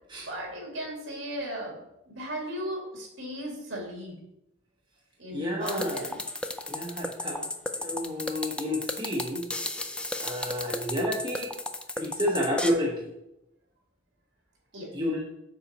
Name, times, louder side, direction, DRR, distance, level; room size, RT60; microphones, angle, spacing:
voice 1, 0.2-4.2 5.2-6.2 14.7-14.9, right 1 dB, 65° right, 0 dB, 2.3 m, -36 dB
voice 2, 5.3-6.1 6.7-7.5 7.8-9.5 10.2-11.5 12.0-13.1 14.9-15.2, left 1 dB, 25° right, -3 dB, 1.2 m, -30 dB
sound 1, 5.6-12.7, left 2 dB, 5° left, 0.4 m, -34 dB
6.9 x 6.6 x 4.2 m, 0.87 s
head